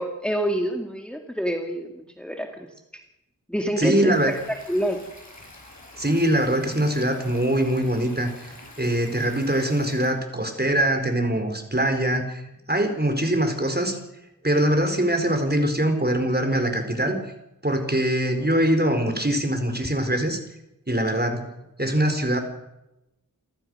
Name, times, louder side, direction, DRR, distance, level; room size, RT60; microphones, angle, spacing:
voice 1, 0.0-2.7 2.9-3.0 3.5-5.0, equal, 5° left, 3 dB, 2.1 m, -27 dB
voice 2, 3.8-4.3 6.0-8.5 8.8-12.4 12.7-14.0 14.4-17.2 17.6-20.4 20.9-21.5 21.8-22.4, right 1 dB, 30° right, 5 dB, 4.6 m, -23 dB
Stream, 4.1-10.1, left 1 dB, 55° left, 7.1 m, -46 dB
28.0 x 14.5 x 6.5 m, 0.90 s
wide cardioid pair, 40°, 34 cm